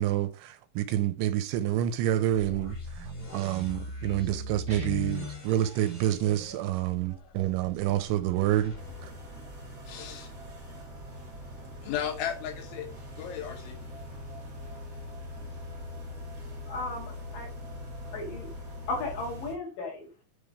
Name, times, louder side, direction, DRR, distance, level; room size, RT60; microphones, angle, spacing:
voice 1, 0.0-2.8 3.3-8.7, right 12 dB, 85° right, 3.0 m, -28 dB
sound 1, 2.3-10.2, equal, 25° left, 2.2 m, -42 dB
Guitar, 4.7-5.5, left 6 dB, 60° right, 0.7 m, -37 dB
sound 2, 8.7-19.5, left 1 dB, 45° right, 1.0 m, -42 dB
voice 2, 9.9-10.3 11.8-12.9 13.1-13.8, left 9 dB, 80° left, 3.6 m, -35 dB
voice 3, 16.7-17.5 18.1-18.5 18.9-20.1, left 2 dB, 55° left, 3.2 m, -35 dB
9.5 x 3.8 x 5.0 m
omnidirectional pair, 5.5 m